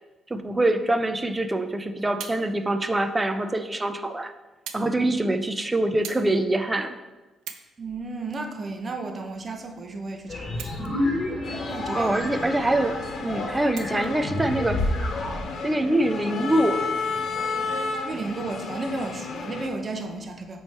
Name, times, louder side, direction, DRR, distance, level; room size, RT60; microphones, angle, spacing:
voice 1, 0.3-4.3 4.7-7.0 11.9-14.9 15.6-16.9, right 1 dB, 15° right, 9 dB, 0.5 m, -24 dB
sound 1, 2.1-2.4 3.3-3.4 4.7-4.9 5.2-5.5 6.0-6.3 6.8-6.9 7.3-7.7 8.3-9.3 10.5-11.2 11.6-11.7 13.7-14.2 15.1-15.2, right 9 dB, 90° right, 0.5 m, -41 dB
voice 2, 7.8-10.8 11.6-12.2 18.0-20.6, right 3 dB, 35° right, 4 dB, 0.9 m, -33 dB
sound 2, 10.3-15.5, left 1 dB, 35° left, 1.7 m, -30 dB
sound 3, 11.4-19.7, left 4 dB, 65° left, 0.8 m, -32 dB
8.0 x 3.2 x 4.4 m, 1.2 s
cardioid pair, 90°, 0 cm